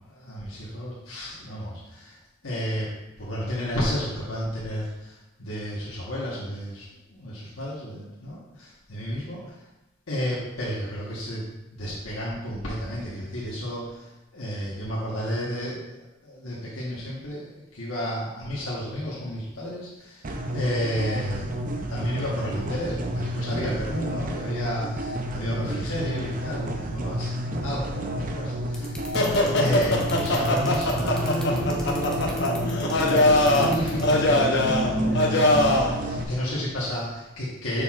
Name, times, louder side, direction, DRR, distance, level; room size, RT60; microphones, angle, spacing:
voice 1, 0.1-2.2 2.4-2.9 3.2-9.5 10.1-21.6 21.9-28.9 29.6-32.4 32.9-37.8, equal, 85° left, -7 dB, 1.3 m, -32 dB
sound 1, 20.2-36.2, equal, 40° right, 0.6 m, -31 dB
sound 2, 28.7-34.2, left 2 dB, 5° left, 0.7 m, -40 dB
sound 3, 29.1-35.9, left 1 dB, 55° left, 0.8 m, -22 dB
6.6 x 5.7 x 2.5 m, 0.97 s
head